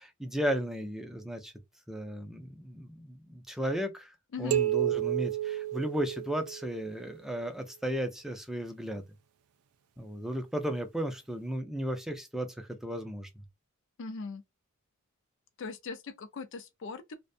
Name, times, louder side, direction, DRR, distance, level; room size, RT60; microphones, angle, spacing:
voice 1, 0.0-1.5 1.9-4.1 4.4-9.0 10.0-13.3, equal, ahead, 0.4 m, -35 dB
sound 1, 4.5-6.9, right 12 dB, 80° right, 0.4 m, -31 dB
voice 2, 14.0-14.4 15.6-17.1, left 4 dB, 60° left, 0.4 m, -40 dB
2.5 x 2.1 x 2.4 m
head